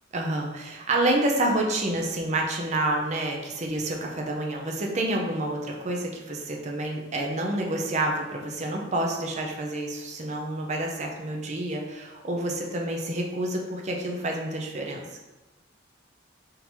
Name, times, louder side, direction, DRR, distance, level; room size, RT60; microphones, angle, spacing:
voice 1, 0.1-15.0, right 1 dB, 40° right, 0 dB, 0.6 m, -28 dB
3.7 x 2.7 x 4.4 m, 1.1 s
head